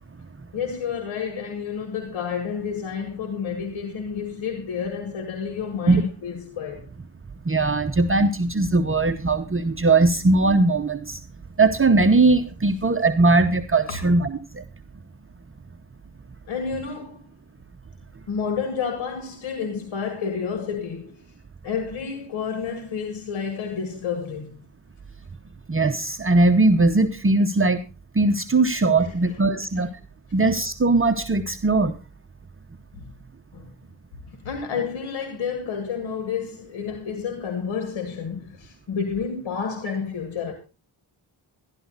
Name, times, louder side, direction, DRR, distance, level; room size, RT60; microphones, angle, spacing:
voice 1, 0.5-6.9 13.9-14.0 16.5-17.2 18.3-21.2 21.6-24.6 29.0-29.4 29.8-29.9 32.9-33.1 33.5-33.7 34.3-40.5, left 6 dB, 90° left, 1.9 m, -30 dB
voice 2, 7.4-11.2 11.6-14.3 14.5-14.6 25.7-27.8 28.1-29.9 30.3-31.9, right 3 dB, 30° right, 0.9 m, -19 dB
12.5 x 11.5 x 4.0 m
cardioid pair, 55°, 46 cm